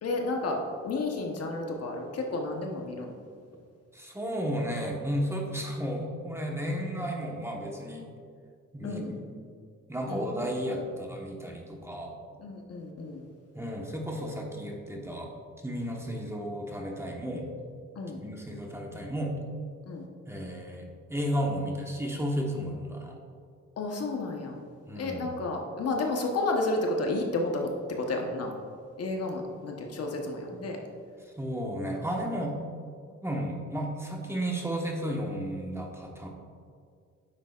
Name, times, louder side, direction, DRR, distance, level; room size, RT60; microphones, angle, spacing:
voice 1, 0.0-3.1 8.8-9.2 10.1-10.3 12.4-13.2 18.0-18.2 19.9-20.1 23.8-24.6 25.0-28.5 29.0-30.8, left 2 dB, 55° left, 1 dB, 1.1 m, -31 dB
voice 2, 3.9-8.1 8.7-9.4 9.9-12.2 13.5-15.3 15.6-17.5 18.1-19.4 20.3-23.2 24.8-25.3 31.4-32.5 33.2-36.3, equal, 10° right, 0 dB, 1.2 m, -33 dB
9.7 x 7.3 x 2.4 m, 2.2 s
cardioid pair, 90°, 30 cm